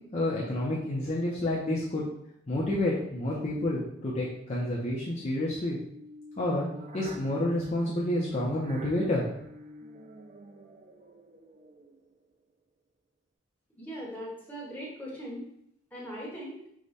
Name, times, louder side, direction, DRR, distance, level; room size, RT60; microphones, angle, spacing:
voice 1, 0.1-2.0 2.5-5.8 6.4-6.7 6.9-9.2, left 1 dB, 35° left, -5 dB, 0.6 m, -29 dB
sound 1, 5.7-12.1, right 2 dB, 35° right, 0.3 m, -44 dB
voice 2, 13.8-15.5 15.9-16.6, equal, 10° left, -5 dB, 1.2 m, -39 dB
4.8 x 2.2 x 4.0 m, 0.73 s
head